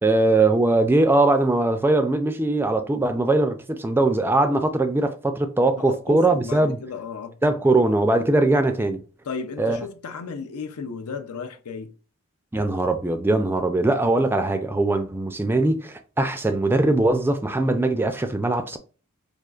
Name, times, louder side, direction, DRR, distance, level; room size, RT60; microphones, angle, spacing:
voice 1, 0.0-6.8 7.4-9.0 9.6-9.8 12.5-18.8, right 2 dB, 10° right, 0.3 m, -21 dB
voice 2, 5.8-7.4 9.2-11.9, left 5 dB, 85° left, 0.5 m, -34 dB
4.9 x 2.4 x 2.3 m
head